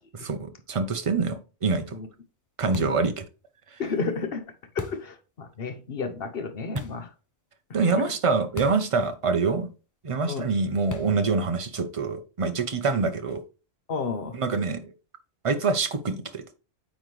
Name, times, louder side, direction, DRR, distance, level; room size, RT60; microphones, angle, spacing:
voice 1, 0.2-2.0 2.6-3.2 7.7-9.7 10.0-13.4 14.3-14.9 15.4-16.4, right 4 dB, 35° right, 0.6 m, -25 dB
sound 1, 2.7-3.1 4.8-5.1 6.8-7.1 8.6-8.9 9.2-9.3 10.9-11.3, left 4 dB, 25° left, 0.4 m, -38 dB
voice 2, 3.8-4.5 4.7-7.1 7.9-8.0 10.3-10.5 13.9-14.4, left 4 dB, 55° left, 1.0 m, -31 dB
8.8 x 3.9 x 3.2 m
omnidirectional pair, 1.3 m